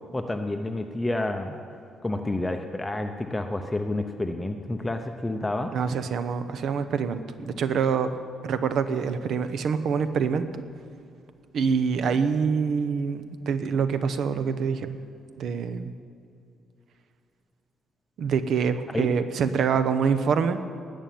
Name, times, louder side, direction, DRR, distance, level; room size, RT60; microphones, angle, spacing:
voice 1, 0.1-1.5 2.0-5.7 18.9-19.1, left 2 dB, 10° left, 5 dB, 0.7 m, -29 dB
voice 2, 5.7-8.1 8.4-10.6 11.5-15.0 15.4-15.9 18.2-20.6, right 6 dB, 60° right, 10 dB, 0.9 m, -25 dB
19.0 x 7.1 x 9.3 m, 2.6 s
cardioid pair, 160°, 0 cm